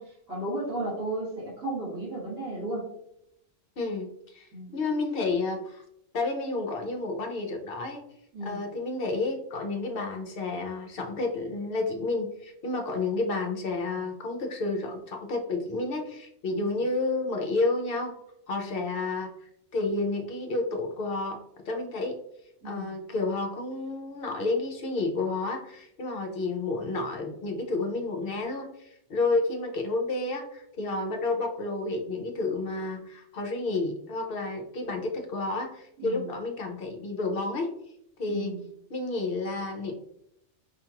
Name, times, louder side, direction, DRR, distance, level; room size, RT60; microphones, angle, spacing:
voice 1, 0.0-2.9 4.5-4.7 8.3-8.7 16.5-16.8 22.6-22.9 36.0-36.3 38.3-38.7, right 1 dB, 80° right, -9 dB, 2.1 m, -34 dB
voice 2, 3.8-5.8 6.1-8.0 8.4-18.1 18.5-21.4 21.7-22.2 22.6-37.7 38.2-38.6 38.9-39.9, left 3 dB, 55° left, 3 dB, 0.7 m, -30 dB
4.9 x 2.3 x 2.9 m, 0.77 s
omnidirectional pair, 1.3 m